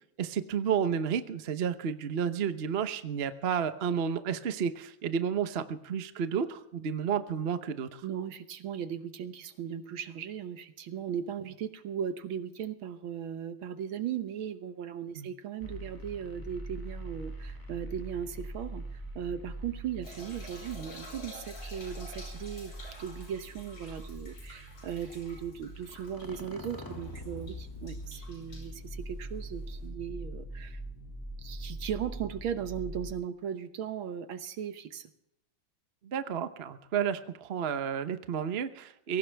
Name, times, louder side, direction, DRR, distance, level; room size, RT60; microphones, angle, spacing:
voice 1, 0.2-8.0 15.2-15.3 36.0-39.2, right 7 dB, 50° right, 10 dB, 0.8 m, -31 dB
voice 2, 8.0-22.7 23.0-30.8 31.4-35.1, right 8 dB, 70° right, 10 dB, 1.9 m, -37 dB
sound 1, 15.6-33.1, right 1 dB, 10° left, 2.1 m, -43 dB
sound 2, 20.0-29.8, left 1 dB, 75° left, 6.5 m, -50 dB
22.5 x 17.5 x 3.5 m, 0.80 s
omnidirectional pair, 2.3 m